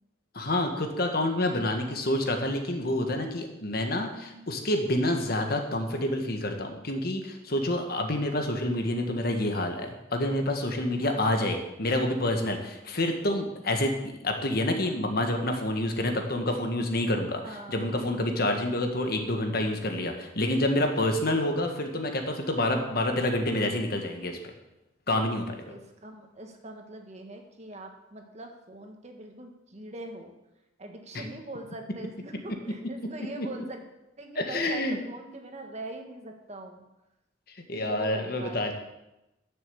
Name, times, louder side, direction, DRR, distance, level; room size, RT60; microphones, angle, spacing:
voice 1, 0.3-24.5 25.1-25.7 31.1-31.2 33.4-33.5 34.3-35.0 37.7-38.7, left 1 dB, 55° left, 4 dB, 1.6 m, -28 dB
voice 2, 4.0-4.5 11.0-11.6 17.4-18.2 25.7-30.3 30.8-33.8 34.2-36.9 37.7-38.7, right 2 dB, 40° right, 4 dB, 1.6 m, -43 dB
10.5 x 7.2 x 7.0 m, 0.93 s
head